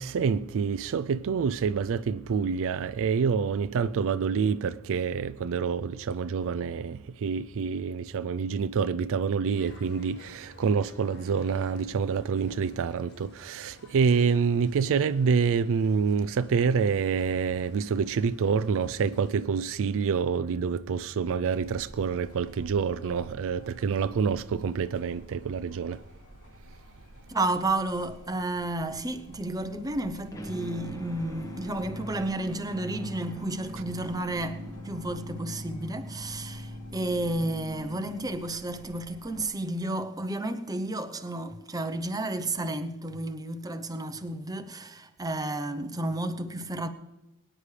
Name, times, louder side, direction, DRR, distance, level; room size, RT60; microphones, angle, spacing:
voice 1, 0.0-26.0, right 6 dB, 60° right, 0.4 m, -27 dB
sound 1, 9.4-19.3, left 2 dB, 50° left, 1.5 m, -54 dB
sound 2, 21.5-39.5, equal, 85° left, 2.7 m, -52 dB
voice 2, 27.3-46.9, right 2 dB, 15° right, 0.7 m, -32 dB
sound 3, 30.3-38.6, equal, 15° left, 1.3 m, -41 dB
22.5 x 9.9 x 3.3 m
head